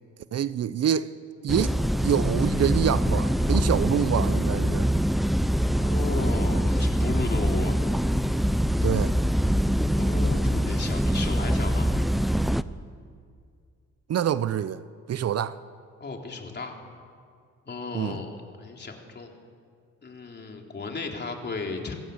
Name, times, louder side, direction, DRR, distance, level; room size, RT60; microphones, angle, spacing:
voice 1, 0.3-1.1 1.4-5.0 8.8-9.1 14.1-14.8 15.1-15.6 17.9-18.2, right 9 dB, 55° right, 0.8 m, -26 dB
sound 1, 1.5-12.6, equal, ahead, 0.6 m, -24 dB
voice 2, 5.8-7.8 9.9-11.9 16.0-16.7 17.7-19.3 20.0-22.0, left 3 dB, 35° left, 3.6 m, -34 dB
27.5 x 16.0 x 8.1 m
cardioid pair, 90°, 30 cm